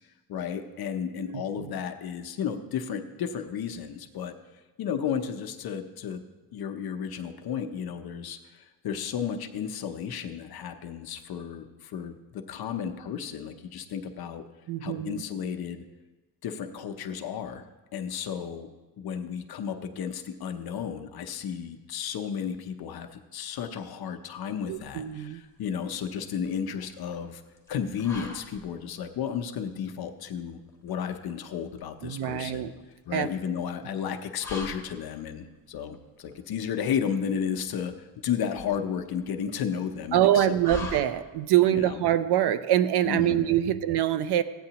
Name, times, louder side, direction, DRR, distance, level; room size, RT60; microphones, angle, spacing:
voice 1, 0.3-4.3 4.8-6.2 6.5-14.4 14.8-15.8 16.4-17.6 17.9-18.7 19.0-27.4 27.7-32.7 33.1-40.9 41.7-42.0 43.1-43.5, left 7 dB, 65° left, 6 dB, 0.7 m, -33 dB
voice 2, 1.2-1.7 14.7-15.2 24.7-25.4 32.0-32.7 33.1-33.3 40.1-44.4, right 12 dB, 75° right, 12 dB, 0.6 m, -24 dB
sound 1, 24.7-41.6, left 4 dB, 5° left, 1.2 m, -46 dB
16.0 x 8.9 x 2.9 m, 1.2 s
wide cardioid pair, 170°, 40 cm